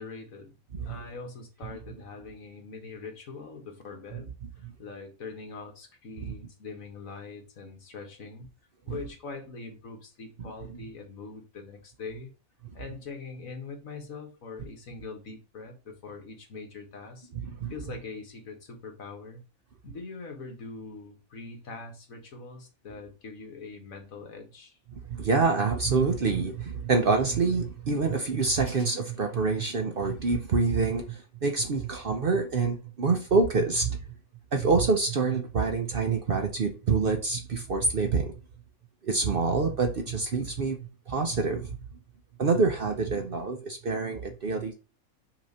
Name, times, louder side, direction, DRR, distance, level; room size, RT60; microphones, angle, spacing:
voice 1, 0.0-0.6 0.9-8.5 8.8-12.3 12.7-17.3 17.7-19.4 19.8-24.8, left 4 dB, 70° left, 1.8 m, -43 dB
voice 2, 24.9-34.0 34.5-38.3 39.0-40.8 41.1-41.7 42.4-44.8, right 4 dB, 50° right, 0.8 m, -26 dB
6.0 x 2.9 x 5.3 m
omnidirectional pair, 1.5 m